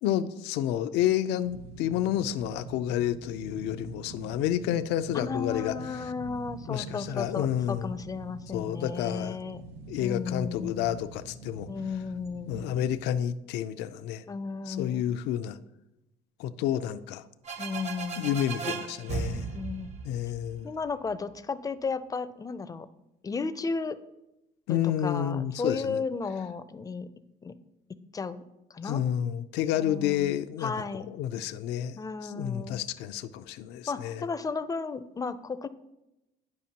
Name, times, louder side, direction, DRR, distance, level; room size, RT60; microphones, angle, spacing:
voice 1, 0.0-6.1 6.7-7.9 8.5-9.4 9.9-11.7 12.5-14.2 14.7-15.6 16.4-17.2 18.2-19.5 20.0-20.7 24.7-26.0 28.8-34.3, left 11 dB, 90° left, 13 dB, 0.4 m, -30 dB
sound 1, 1.4-12.9, right 2 dB, 75° right, 0.9 m, -45 dB
voice 2, 5.1-9.6 10.0-11.1 11.7-12.7 14.3-15.1 17.6-18.4 19.5-20.0 20.6-22.9 23.2-24.0 24.7-27.1 27.4-27.6 28.1-28.4 28.7-29.0 29.7-30.3 30.6-31.1 32.0-32.8 33.9-35.7, left 4 dB, 20° left, 13 dB, 0.4 m, -34 dB
sound 2, 17.4-21.1, right 5 dB, 45° right, 0.7 m, -36 dB
10.5 x 5.1 x 2.8 m, 0.92 s
cardioid pair, 110°, 17 cm